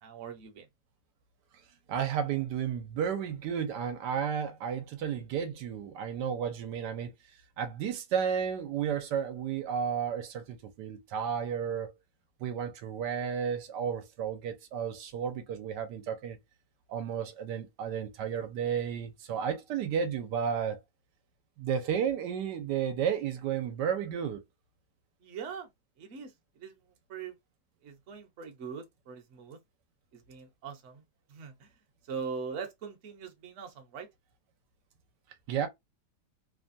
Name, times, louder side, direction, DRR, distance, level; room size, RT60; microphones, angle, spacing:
voice 1, 0.0-0.7 25.2-25.7 26.0-26.3 26.6-26.7 27.1-27.4 27.8-29.6 30.1-31.0 31.3-31.7 32.1-34.1, right 5 dB, 55° right, 1.0 m, -41 dB
voice 2, 1.9-7.1 7.6-11.9 12.4-16.4 16.9-20.8 21.6-24.4 35.5-35.7, right 8 dB, 80° right, 1.3 m, -32 dB
3.2 x 2.2 x 2.5 m
omnidirectional pair, 1.8 m